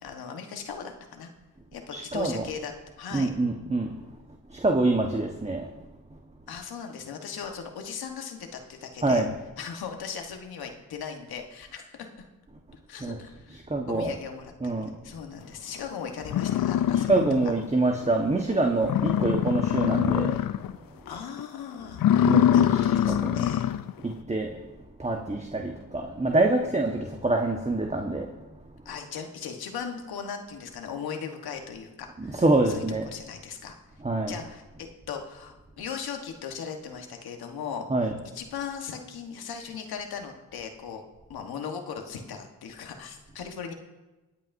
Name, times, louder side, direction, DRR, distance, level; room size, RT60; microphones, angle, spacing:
voice 1, 0.0-1.3 1.7-2.7 3.0-3.3 6.5-9.2 9.6-12.1 12.9-17.2 21.1-23.7 28.8-33.8 34.3-37.9 38.3-41.0 41.3-43.7, left 6 dB, 85° left, 4 dB, 1.4 m, -38 dB
voice 2, 1.9-2.5 3.1-4.0 4.5-5.7 9.0-9.3 13.0-13.2 13.5-14.1 14.6-14.9 16.3-16.4 16.9-20.4 22.2-23.5 24.0-24.6 25.0-28.3 32.2-33.1 34.0-34.4 37.9-38.2, right 2 dB, 20° right, 2 dB, 1.3 m, -26 dB
sound 1, 15.8-15.9 16.3-17.7 18.0-18.1 18.5-18.6 18.8-20.8 21.1-21.4 21.9-23.9, left 10 dB, 65° left, 0.6 m, -23 dB
23.0 x 8.2 x 2.7 m, 1.1 s
supercardioid pair, 45°, 36 cm